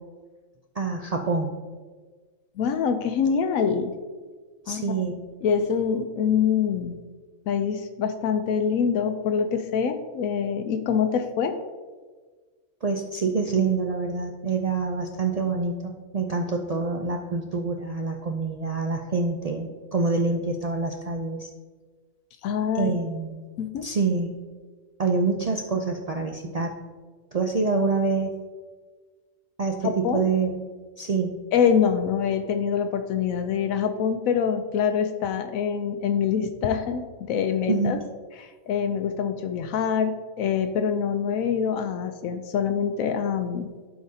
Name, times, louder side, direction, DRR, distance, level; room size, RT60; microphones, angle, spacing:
voice 1, 0.8-1.5 4.7-5.2 12.8-21.5 22.7-23.5 23.8-24.3 25.0-26.7 27.3-28.4 29.6-30.6 31.0-31.4 37.7-37.9, right 4 dB, 70° right, 2 dB, 0.3 m, -26 dB
voice 2, 2.6-3.9 4.7-5.0 5.4-7.0 7.5-11.6 22.4-22.9 23.6-23.9 29.8-30.2 31.5-38.0 38.4-43.7, left 7 dB, 85° left, 7 dB, 1.0 m, -25 dB
12.0 x 4.9 x 2.7 m, 1.4 s
omnidirectional pair, 1.4 m